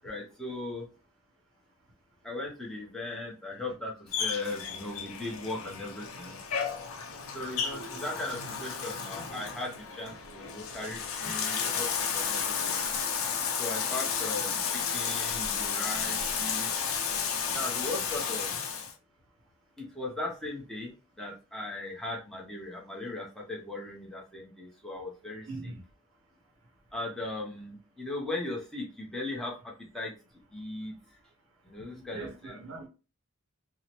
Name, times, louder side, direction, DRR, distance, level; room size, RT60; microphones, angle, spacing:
voice 1, 0.0-0.9 2.2-6.4 7.3-12.8 13.6-16.8 17.5-18.5 19.8-25.7 26.9-30.1 30.5-30.9 31.6-32.6, left 2 dB, ahead, 0.7 m, -38 dB
Bathtub (filling or washing), 4.1-18.9, left 6 dB, 75° left, 0.5 m, -32 dB
voice 2, 31.9-32.9, right 3 dB, 70° right, 0.6 m, -41 dB
2.7 x 2.0 x 2.9 m
head